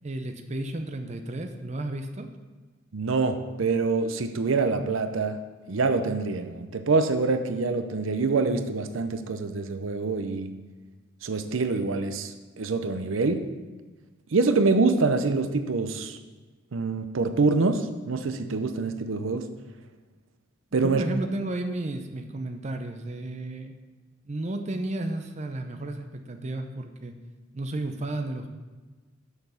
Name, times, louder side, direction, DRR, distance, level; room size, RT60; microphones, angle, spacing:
voice 1, 0.0-2.3 20.8-23.7 24.3-27.2 27.5-28.5, right 2 dB, 35° right, 6 dB, 0.6 m, -33 dB
voice 2, 2.9-5.4 5.7-10.5 11.2-13.5 14.3-16.2 16.7-19.4 20.7-21.0, right 3 dB, 90° right, 9 dB, 0.6 m, -25 dB
6.9 x 6.5 x 5.6 m, 1.3 s
head